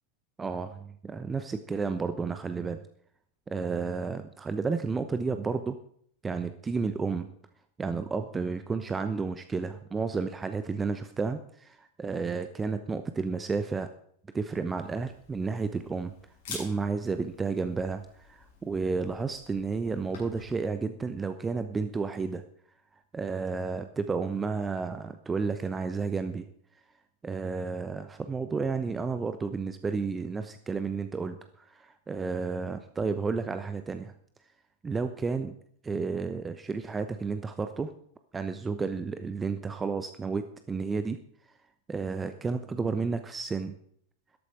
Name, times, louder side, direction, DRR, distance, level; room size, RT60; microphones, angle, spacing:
voice 1, 0.4-2.8 3.5-5.8 6.2-7.3 7.8-13.9 14.3-16.1 16.5-22.4 23.1-26.5 27.2-34.1 34.8-35.5 35.8-37.9 38.3-41.2 41.9-43.8, right 4 dB, 15° right, 10 dB, 0.9 m, -32 dB
Camera, 14.7-20.5, left 4 dB, 55° left, 7.9 m, -48 dB
13.5 x 12.5 x 4.7 m, 0.63 s
figure-of-eight pair, 90°, 0 cm